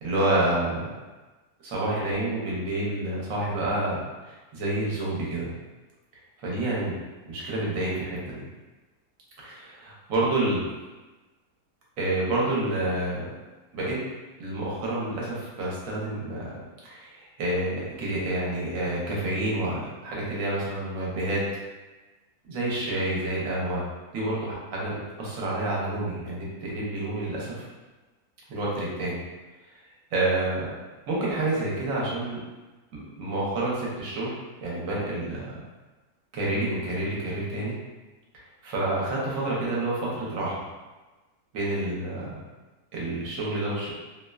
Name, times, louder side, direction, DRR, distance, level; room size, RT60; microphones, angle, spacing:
voice 1, 0.0-0.9 1.6-5.5 6.4-7.0 7.3-8.4 9.4-10.7 12.0-13.3 13.7-14.0 14.4-21.5 22.4-23.8 24.1-24.9 25.2-27.6 28.5-29.2 30.1-30.7 31.1-32.4 33.2-34.3 34.6-35.5 36.3-37.7 38.3-40.6 41.5-42.4 42.9-43.9, right 2 dB, 65° right, -5 dB, 1.0 m, -28 dB
2.6 x 2.1 x 2.2 m, 1.2 s
omnidirectional pair, 1.6 m